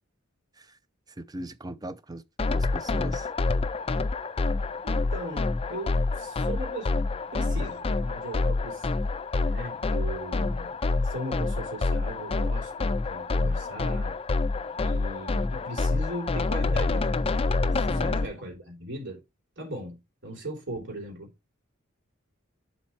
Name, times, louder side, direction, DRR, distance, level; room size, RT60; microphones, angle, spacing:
voice 1, 1.2-2.2 2.5-3.3 17.9-18.2, right 1 dB, 20° right, 0.6 m, -39 dB
sound 1, 2.4-18.2, left 3 dB, 30° left, 0.4 m, -27 dB
voice 2, 4.8-7.0 7.3-9.0 9.4-10.8 11.0-14.2 14.8-19.2 19.6-21.3, right 1 dB, 60° right, 3.1 m, -38 dB
7.1 x 4.2 x 4.5 m
head